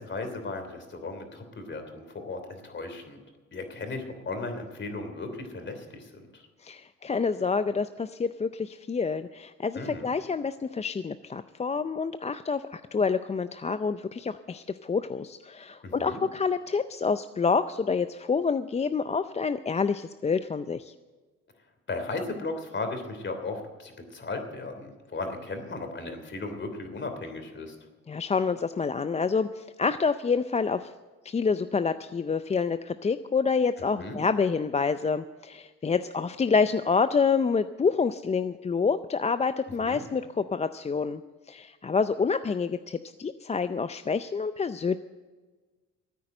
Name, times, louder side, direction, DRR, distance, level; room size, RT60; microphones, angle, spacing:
voice 1, 0.0-3.2 3.5-6.5 9.7-10.1 15.8-16.2 21.9-27.8 34.0-34.2 39.8-40.0, left 3 dB, 40° left, 6 dB, 3.0 m, -36 dB
voice 2, 6.6-20.9 28.1-30.9 31.2-41.2 41.5-45.0, left 5 dB, 20° left, 11 dB, 0.4 m, -27 dB
14.0 x 9.3 x 7.8 m, 1.3 s
cardioid pair, 90°, 30 cm